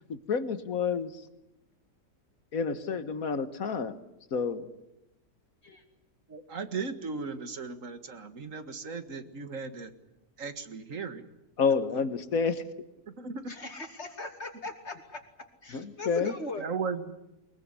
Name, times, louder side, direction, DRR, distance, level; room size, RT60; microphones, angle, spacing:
voice 1, 0.1-1.1 2.5-3.9 4.3-4.7 11.6-12.6 15.7-16.3, left 5 dB, 55° left, 11 dB, 1.8 m, -29 dB
voice 2, 6.3-9.9 10.4-11.2 13.1-13.5 15.8-15.9 16.6-17.1, right 5 dB, 50° right, 10 dB, 2.1 m, -36 dB
voice 3, 13.5-15.2 15.6-16.6, left 3 dB, 40° left, 5 dB, 3.0 m, -39 dB
23.5 x 22.0 x 9.8 m, 0.91 s
omnidirectional pair, 1.8 m